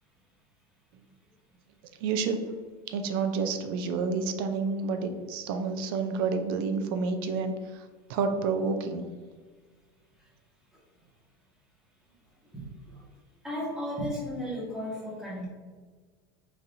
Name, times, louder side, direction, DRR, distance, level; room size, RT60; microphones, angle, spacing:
voice 1, 2.0-2.4 2.9-7.8 8.1-9.0, right 4 dB, 70° right, 7 dB, 0.5 m, -29 dB
voice 2, 13.4-15.5, equal, 5° right, -7 dB, 1.5 m, -34 dB
5.4 x 3.4 x 2.6 m, 1.5 s
cardioid pair, 170°, 12 cm